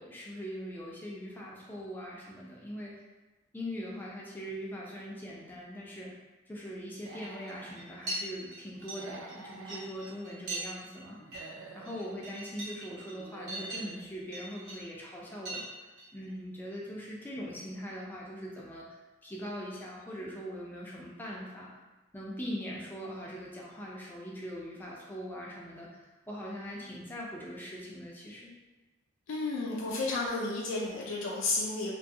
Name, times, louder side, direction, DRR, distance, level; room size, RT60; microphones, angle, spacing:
voice 1, 0.0-3.0 3.5-6.1 6.5-11.2 11.7-15.9 16.1-21.7 22.1-28.5, equal, 10° left, -4 dB, 0.3 m, -41 dB
Human voice / Animal, 6.9-7.8 8.9-9.9 11.1-12.0 13.1-14.0, right 3 dB, 80° right, 0.4 m, -48 dB
sound 1, 7.2-7.5 7.8-8.2 8.5-10.6 10.9-11.0 11.3-11.5 11.8-14.0 14.3-14.9 15.5-15.7 16.0-16.2, right 2 dB, 55° right, 0.9 m, -40 dB
voice 2, 29.3-31.9, left 2 dB, 90° left, -3 dB, 0.4 m, -32 dB
2.6 x 2.2 x 2.6 m, 1.1 s
head